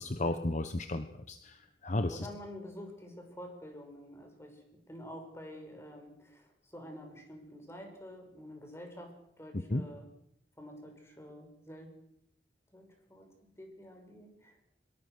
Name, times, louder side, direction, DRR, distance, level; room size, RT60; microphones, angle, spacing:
voice 1, 0.0-2.3 9.7-9.9, left 2 dB, 45° left, 8 dB, 1.2 m, -34 dB
voice 2, 2.1-10.1 10.6-11.9 12.7-13.3 13.6-14.6, equal, 15° left, 3 dB, 6.1 m, -48 dB
23.5 x 22.0 x 6.4 m, 0.72 s
head